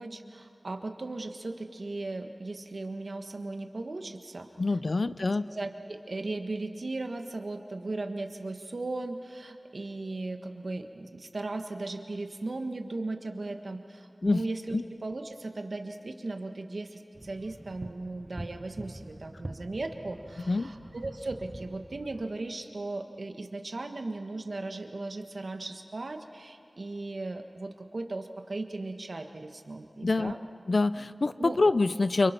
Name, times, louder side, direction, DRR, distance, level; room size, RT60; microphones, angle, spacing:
voice 1, 0.0-4.5 5.5-30.4 31.4-31.6, right 2 dB, 75° right, 5 dB, 1.6 m, -37 dB
voice 2, 4.6-5.5 14.2-14.4 14.7-14.8 20.5-20.7 30.0-30.3 30.7-32.3, left 3 dB, 70° left, 14 dB, 0.6 m, -26 dB
sound 1, 17.1-22.3, right 1 dB, 30° right, 1.2 m, -45 dB
29.0 x 26.0 x 6.0 m, 2.5 s
wide cardioid pair, 65°, 0 cm